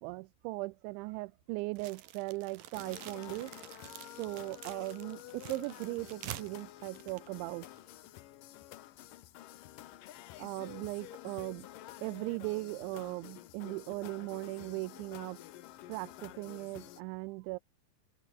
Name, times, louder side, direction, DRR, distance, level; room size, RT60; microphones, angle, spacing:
voice 1, 0.0-3.5 4.2-7.7 10.4-11.7 12.0-15.4 15.9-17.6, right 23 dB, 90° right, 3.0 m, -38 dB
sound 1, 1.7-7.9, right 12 dB, 60° right, 2.7 m, -48 dB
sound 2, 2.7-17.0, left 14 dB, 75° left, 2.0 m, -50 dB
open air
omnidirectional pair, 5.2 m